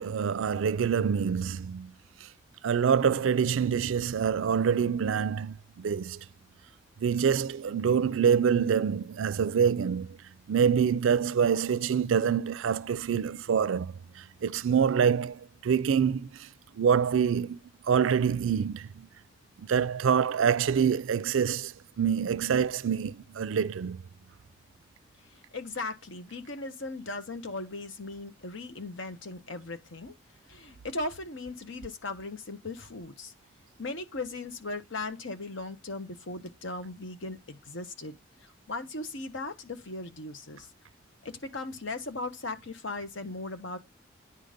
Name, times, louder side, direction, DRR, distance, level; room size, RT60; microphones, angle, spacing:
voice 1, 0.0-1.9 2.6-6.2 7.0-10.2 10.5-16.5 16.7-17.6 17.9-19.1 19.6-24.0, right 7 dB, 85° right, 0.4 m, -26 dB
voice 2, 25.3-30.1 30.5-33.3 33.8-40.7 41.2-43.8, left 2 dB, 75° left, 1.3 m, -38 dB
9.9 x 3.9 x 5.1 m
head